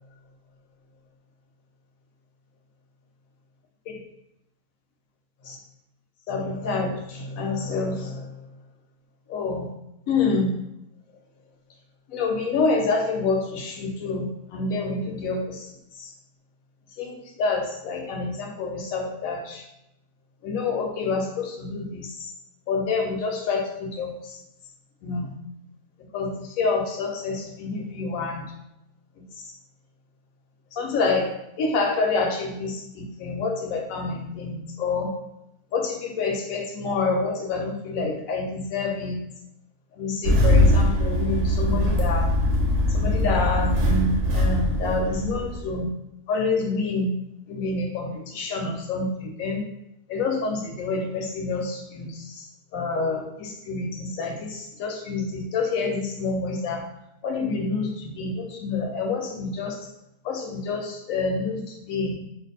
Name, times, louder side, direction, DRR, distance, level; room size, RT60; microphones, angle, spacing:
voice 1, 6.3-8.3 9.3-9.7 10.1-10.5 12.1-15.7 16.0-16.1 17.0-19.7 20.4-22.3 22.7-24.4 25.0-25.3 26.1-28.5 30.7-31.3 31.6-35.2 35.7-39.2 40.0-42.3 42.9-45.9 46.3-47.1 47.5-49.6 50.1-52.5 52.7-56.9 57.2-59.8 60.2-62.1, left 3 dB, 70° left, 2 dB, 0.9 m, -27 dB
Engine starting, 40.2-45.8, left 1 dB, 60° right, 0.8 m, -21 dB
2.5 x 2.3 x 4.0 m, 0.84 s
omnidirectional pair, 1.7 m